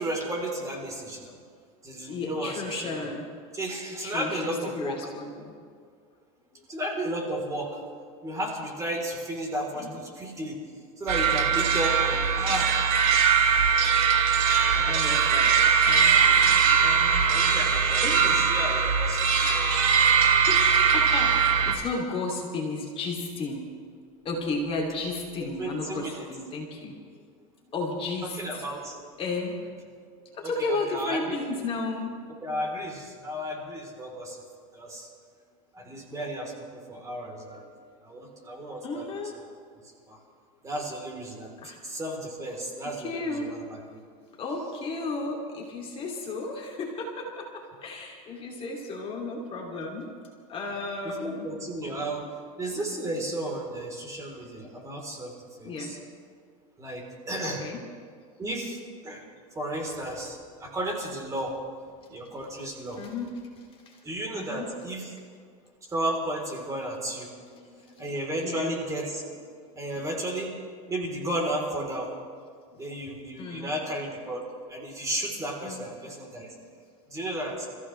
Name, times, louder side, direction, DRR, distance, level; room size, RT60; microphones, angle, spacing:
voice 1, 0.0-1.3 1.8-3.1 3.5-5.0 6.7-7.8 8.2-10.6 11.0-12.8 13.8-13.9 14.7-15.0 17.3-19.8 25.6-26.3 28.3-29.0 30.4-31.4 32.4-34.4 34.7-35.1 35.7-37.7 38.0-39.0 40.1-40.2 40.6-43.8 51.0-52.2 52.6-56.0 56.8-57.6 58.4-59.2 59.6-61.6 62.1-63.0 64.0-65.1 65.9-67.3 68.0-69.2 69.7-70.5 70.9-72.1 72.8-74.4 74.7-76.5 77.1-77.7, right 1 dB, 15° right, 0 dB, 3.7 m, -33 dB
voice 2, 2.0-3.3 4.0-5.5 9.8-10.0 12.5-12.6 13.1-13.2 14.4-15.5 15.8-17.7 18.0-18.4 19.4-19.7 20.3-23.6 24.2-27.2 27.7-28.7 29.2-29.6 30.3-32.1 35.8-36.0 38.8-39.3 41.6-41.8 43.0-43.5 44.4-50.1 50.5-51.5 55.6-56.0 57.6-57.8 62.9-63.3 63.6-64.0 64.3-64.7 67.5-68.0 68.4-68.7 72.7-72.8 73.4-73.7 75.6-75.9, left 3 dB, 30° left, 0 dB, 2.8 m, -34 dB
sound 1, 11.1-21.7, right 6 dB, 70° right, 2.6 m, -21 dB
29.5 x 15.0 x 3.3 m, 2.1 s
supercardioid pair, 130°, 18 cm